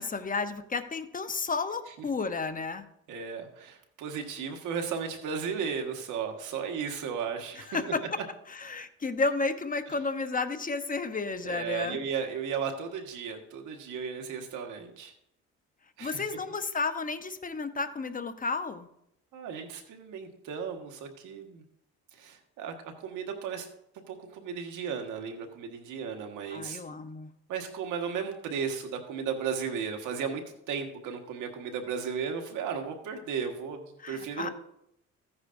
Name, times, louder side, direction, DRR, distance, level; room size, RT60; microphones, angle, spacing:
voice 1, 0.0-2.8 7.7-8.0 8.6-12.0 16.0-18.9 26.5-27.3 34.0-34.5, left 4 dB, 25° left, 9 dB, 0.9 m, -32 dB
voice 2, 3.1-7.9 11.4-15.1 16.0-16.3 19.3-21.6 22.1-23.7 24.1-26.8 27.5-34.5, right 6 dB, 90° right, 4 dB, 1.6 m, -35 dB
15.0 x 9.6 x 2.6 m, 0.79 s
cardioid pair, 90°, 30 cm